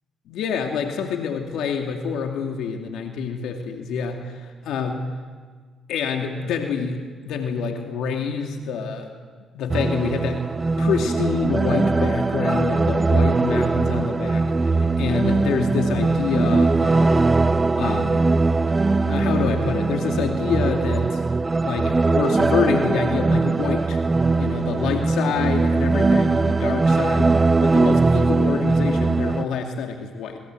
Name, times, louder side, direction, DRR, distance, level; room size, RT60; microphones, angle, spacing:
voice 1, 0.3-5.1 5.9-7.0 7.3-9.1 9.5-10.4 10.8-17.2 17.7-18.2 19.1-21.2 21.6-24.0 24.4-30.4, left 5 dB, 75° left, 3 dB, 2.6 m, -27 dB
sound 1, 9.7-29.4, right 3 dB, 25° right, 0.7 m, -20 dB
27.5 x 21.0 x 7.9 m, 1.5 s
supercardioid pair, 65°, 0 cm